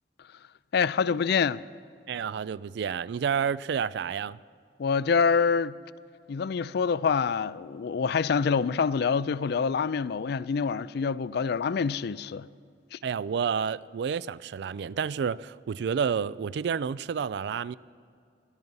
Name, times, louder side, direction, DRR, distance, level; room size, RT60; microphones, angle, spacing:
voice 1, 0.7-1.6 4.8-5.8 6.3-12.5 12.9-13.0, left 5 dB, 65° left, 0.4 m, -26 dB
voice 2, 2.1-4.4 13.0-17.7, right 7 dB, 70° right, 0.3 m, -30 dB
18.5 x 13.0 x 5.4 m
head